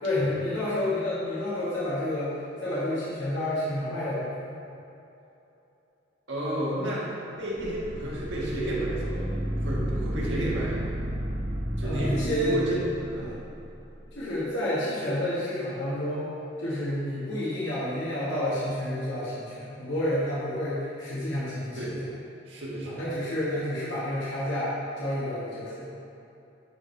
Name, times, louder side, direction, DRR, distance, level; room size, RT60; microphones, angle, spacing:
voice 1, 0.0-2.3 2.6-4.6 11.8-12.5 13.2-13.4 14.1-16.3 16.6-22.0 22.9-26.0, left 1 dB, 85° left, -10 dB, 1.6 m, -30 dB
voice 2, 6.3-10.9 11.8-13.3 21.7-22.0 22.5-23.0, right 1 dB, 75° right, -6 dB, 1.7 m, -31 dB
sound 1, 7.6-13.8, equal, 45° right, 1.0 m, -32 dB
11.0 x 4.3 x 3.3 m, 2.9 s
head